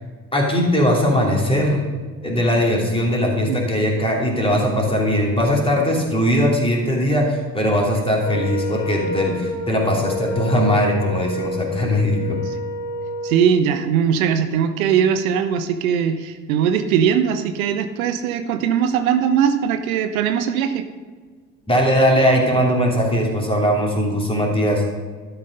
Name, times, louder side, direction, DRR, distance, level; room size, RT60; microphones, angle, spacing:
voice 1, 0.3-1.8 2.2-12.4 21.7-24.8, equal, 10° left, -1 dB, 2.9 m, -19 dB
Wind instrument woodwind instrument, 8.2-13.5, left 2 dB, 65° left, 1.9 m, -28 dB
voice 2, 13.2-20.9, right 8 dB, 70° right, 10 dB, 0.7 m, -20 dB
12.0 x 5.7 x 5.3 m, 1.5 s
figure-of-eight pair, 55°, 43 cm